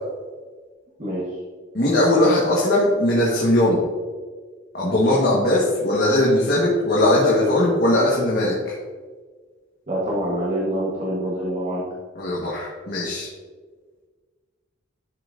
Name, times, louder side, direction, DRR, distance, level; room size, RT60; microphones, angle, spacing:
voice 1, 1.7-3.8 4.7-8.7 12.1-13.3, left 1 dB, 50° left, -5 dB, 1.6 m, -19 dB
voice 2, 9.9-11.9, right 1 dB, 35° right, -6 dB, 1.4 m, -25 dB
12.0 x 5.7 x 2.7 m, 1.4 s
head